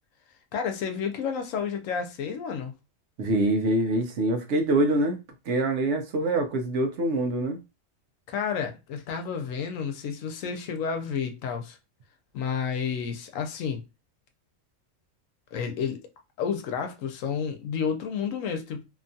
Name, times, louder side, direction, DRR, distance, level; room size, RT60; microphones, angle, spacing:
voice 1, 0.5-2.7 8.3-11.8 12.3-13.8 15.5-16.0 16.4-18.8, left 6 dB, 80° left, 1.0 m, -30 dB
voice 2, 3.2-5.2 5.5-7.6, right 1 dB, 65° right, 0.9 m, -25 dB
2.8 x 2.3 x 2.6 m
omnidirectional pair, 1.4 m